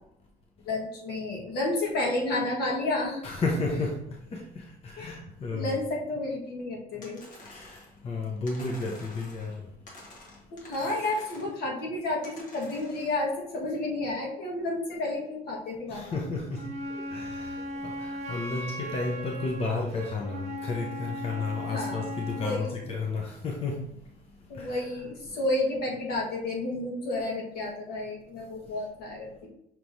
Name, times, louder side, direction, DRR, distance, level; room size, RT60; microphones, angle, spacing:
voice 1, 0.6-3.3 5.0-5.1 5.5-7.2 10.5-16.2 21.7-22.0 22.3-22.9 24.5-29.5, left 2 dB, 70° left, -2 dB, 1.5 m, -31 dB
voice 2, 3.2-5.8 7.4-9.7 10.3-10.4 15.9-23.9 24.3-24.8, left 3 dB, 35° left, 0 dB, 0.7 m, -33 dB
sound 1, 7.0-8.0 8.5-9.6 9.9-11.6 12.2-13.2, left 2 dB, 50° left, 1.4 m, -48 dB
Wind instrument woodwind instrument, 16.5-22.6, left 1 dB, 40° right, 0.7 m, -38 dB
5.9 x 3.1 x 2.6 m, 0.78 s
cardioid pair, 110°, 17 cm